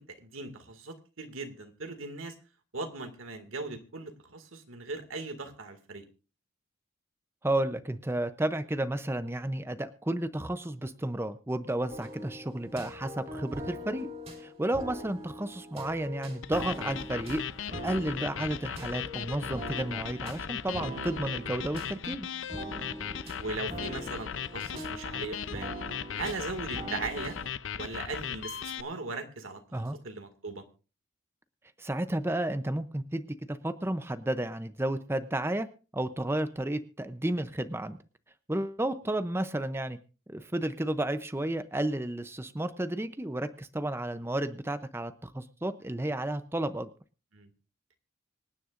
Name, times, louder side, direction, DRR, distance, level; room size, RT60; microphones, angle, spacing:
voice 1, 0.0-2.3 2.7-6.1 23.4-25.7 26.1-27.4 27.8-30.6 47.3-47.5, right 3 dB, 90° right, 6 dB, 2.1 m, -39 dB
voice 2, 7.4-14.1 14.4-17.4 17.8-22.3 29.7-30.0 31.8-35.7 35.9-38.0 38.5-40.0 40.3-46.9, right 1 dB, 10° right, 11 dB, 0.6 m, -32 dB
sound 1, 11.9-27.5, equal, 30° right, 2.9 m, -42 dB
sound 2, 16.4-28.8, left 8 dB, 70° left, 0.6 m, -37 dB
25.5 x 9.9 x 2.5 m, 0.34 s
head